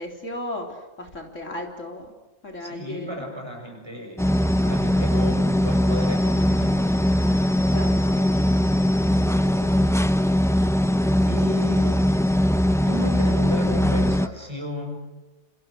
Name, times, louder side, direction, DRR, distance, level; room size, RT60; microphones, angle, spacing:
voice 1, 0.0-2.1 2.4-3.3 7.7-8.3 9.4-9.9, left 1 dB, 80° left, 2 dB, 4.1 m, -35 dB
voice 2, 2.6-4.2 4.6-6.9 11.3-12.1 12.9-15.0, left 1 dB, 20° right, 2 dB, 7.2 m, -33 dB
sound 1, 4.2-14.3, left 1 dB, 5° left, 0.6 m, -21 dB
29.5 x 28.0 x 6.6 m, 1.1 s
omnidirectional pair, 1.3 m